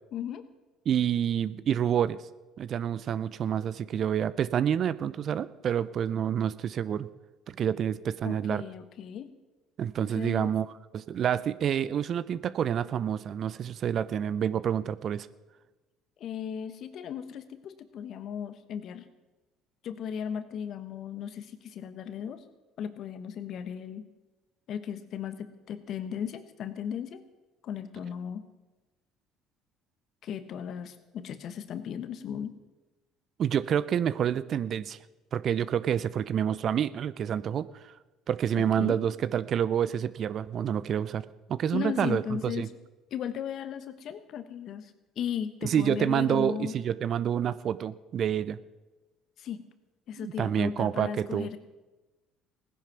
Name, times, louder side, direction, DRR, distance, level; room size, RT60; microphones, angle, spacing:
voice 1, 0.1-0.4 8.2-9.3 10.1-10.5 16.2-19.1 19.8-22.4 22.8-24.1 24.7-27.2 27.6-28.4 30.2-32.5 38.5-39.0 41.7-42.7 43.1-44.9 45.2-46.7 49.4-49.6 50.1-51.6, left 8 dB, 55° left, 12 dB, 1.1 m, -36 dB
voice 2, 0.9-2.2 2.6-7.1 7.5-8.6 9.8-10.7 10.9-15.3 33.4-35.0 35.3-37.9 38.3-41.2 41.5-42.7 45.6-48.6 50.2-51.5, right 9 dB, 50° right, 16 dB, 0.6 m, -28 dB
17.0 x 10.0 x 5.9 m, 1.2 s
hypercardioid pair, 60°, 0 cm